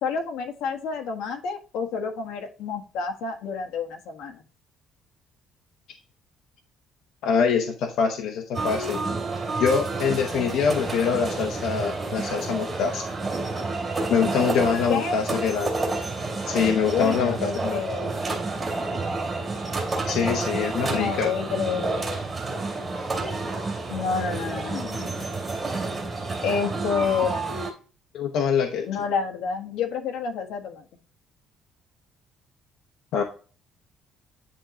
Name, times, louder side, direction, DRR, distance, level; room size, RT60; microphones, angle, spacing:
voice 1, 0.0-4.4 14.9-15.2 16.9-18.2 20.9-22.3 23.9-25.3 26.4-27.6 28.8-30.8, left 6 dB, 90° left, 3 dB, 1.5 m, -29 dB
voice 2, 7.2-9.0 9.6-13.0 14.1-15.7 16.5-17.8 20.1-21.3 28.1-28.9 33.1-33.2, left 6 dB, 65° left, 3 dB, 0.9 m, -24 dB
sound 1, 8.5-27.7, right 3 dB, 20° right, 2.3 m, -29 dB
10.0 x 3.8 x 2.9 m, 0.37 s
cardioid pair, 180°, 0 cm